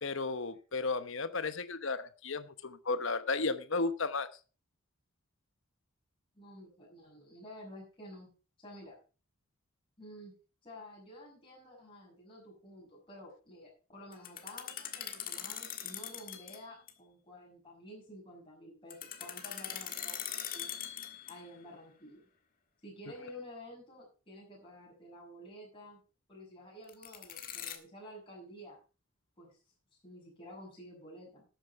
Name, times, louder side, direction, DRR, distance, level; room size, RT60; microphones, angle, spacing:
voice 1, 0.0-4.3, left 3 dB, 60° left, 12 dB, 0.9 m, -34 dB
voice 2, 6.3-8.3 8.6-9.0 10.0-10.3 10.6-20.7 21.3-22.2 22.8-26.0 26.3-28.8 29.4-29.6 30.0-31.5, left 1 dB, 25° left, -3 dB, 5.9 m, -51 dB
sound 1, 14.1-16.6 16.9-17.0 18.9-21.6 26.9-27.8, left 9 dB, 40° left, 1.6 m, -41 dB
12.5 x 9.0 x 4.6 m, 0.35 s
head